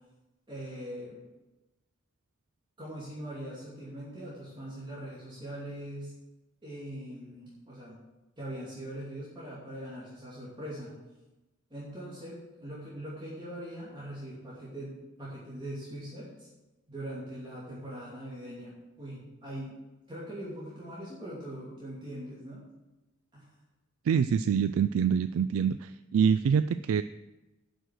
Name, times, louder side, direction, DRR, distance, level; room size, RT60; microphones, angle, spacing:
voice 1, 0.5-1.2 2.8-6.1 6.6-8.0 8.4-10.9 11.7-16.5 16.9-19.8 20.1-22.6 23.3-23.4, right 1 dB, 25° right, -8 dB, 2.7 m, -41 dB
voice 2, 24.1-27.0, right 7 dB, 90° right, 13 dB, 0.3 m, -25 dB
8.0 x 6.4 x 7.5 m, 1.1 s
head